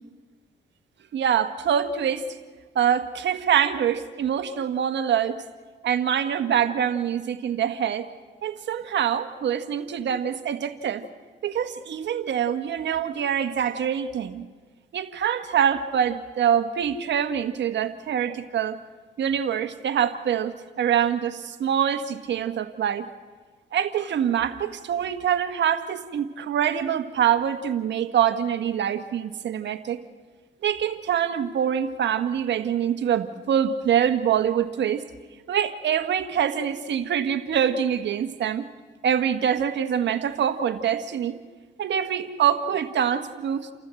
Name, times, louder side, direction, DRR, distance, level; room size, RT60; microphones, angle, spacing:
voice 1, 1.1-2.2 2.7-5.4 5.8-8.1 8.4-11.0 11.4-14.4 14.9-18.8 19.2-23.1 23.7-30.0 30.6-35.0 35.5-38.6 39.0-41.4 41.8-43.7, right 9 dB, 65° right, 9 dB, 1.5 m, -25 dB
29.5 x 14.0 x 7.7 m, 1.4 s
cardioid pair, 90°, 20 cm